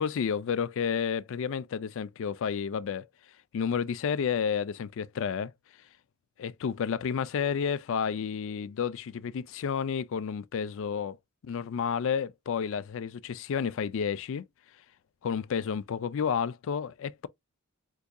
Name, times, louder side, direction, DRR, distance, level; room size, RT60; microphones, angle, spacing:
voice 1, 0.0-3.1 3.5-5.5 6.4-11.2 11.4-14.4 15.2-17.3, left 7 dB, 65° left, 0.4 m, -31 dB
4.6 x 2.6 x 2.3 m
head